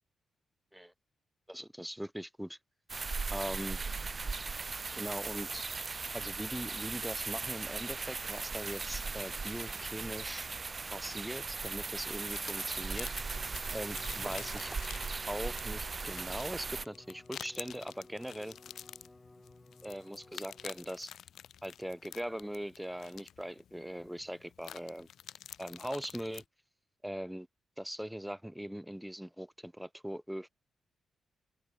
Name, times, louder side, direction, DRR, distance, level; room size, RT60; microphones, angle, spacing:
voice 1, 1.5-2.6 3.3-3.8 4.9-5.6 6.1-10.5 10.9-13.1 13.7-14.7 15.2-18.6 19.8-21.1 21.6-25.1 25.6-26.4 27.0-27.5 27.8-30.5, equal, 5° right, 1.7 m, -41 dB
sound 1, 2.9-16.8, right 4 dB, 35° right, 0.4 m, -38 dB
sound 2, 12.3-26.4, left 9 dB, 75° left, 2.7 m, -50 dB
Bowed string instrument, 12.8-21.1, left 2 dB, 15° left, 7.8 m, -57 dB
open air
cardioid pair, 95°, 0 cm